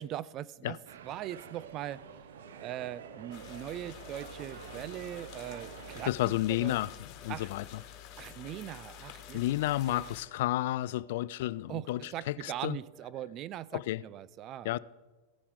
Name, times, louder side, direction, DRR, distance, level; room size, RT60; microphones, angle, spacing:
voice 1, 0.0-2.0 2.6-6.8 7.3-7.5 8.2-9.4 9.9-10.0 11.7-14.8, right 12 dB, 40° right, 0.4 m, -41 dB
sound 1, 0.9-6.1, right 8 dB, 70° right, 0.7 m, -48 dB
sound 2, 1.4-13.6, left 1 dB, 10° right, 4.7 m, -59 dB
sound 3, 3.3-10.2, left 11 dB, 45° left, 2.0 m, -49 dB
voice 2, 6.1-6.9 7.2-7.8 9.3-12.8 13.7-14.0 14.6-14.8, left 15 dB, 60° left, 0.3 m, -31 dB
16.0 x 10.0 x 3.8 m
hypercardioid pair, 105°, 0 cm